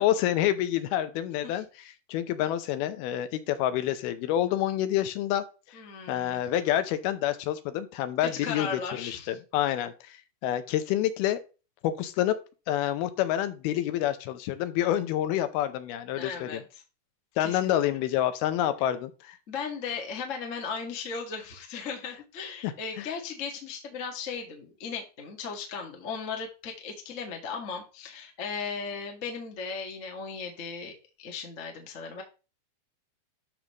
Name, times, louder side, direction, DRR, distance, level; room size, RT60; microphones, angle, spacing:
voice 1, 0.0-1.7 2.1-5.8 6.1-11.4 11.8-12.4 12.7-16.6 17.4-19.4 22.6-23.1, left 12 dB, 85° left, 10 dB, 2.7 m, -28 dB
voice 2, 5.7-6.4 8.2-9.4 16.1-16.8 17.4-17.7 19.5-32.2, left 5 dB, 45° left, 2 dB, 0.9 m, -37 dB
12.5 x 5.3 x 3.0 m, 0.31 s
omnidirectional pair, 4.4 m